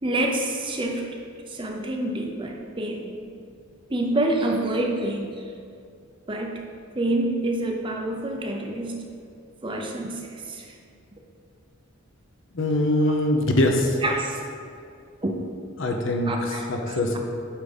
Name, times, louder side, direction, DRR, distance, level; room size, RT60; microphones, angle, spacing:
voice 1, 0.0-1.0 1.5-3.1 3.9-5.4 6.3-6.6 6.9-9.0 9.6-10.7 14.0-14.4 15.2-15.4 16.3-17.2, right 1 dB, 25° right, 1 dB, 0.6 m, -27 dB
voice 2, 12.5-14.0 15.8-17.2, left 1 dB, 60° left, 2 dB, 0.8 m, -23 dB
8.9 x 3.6 x 5.3 m, 2.4 s
head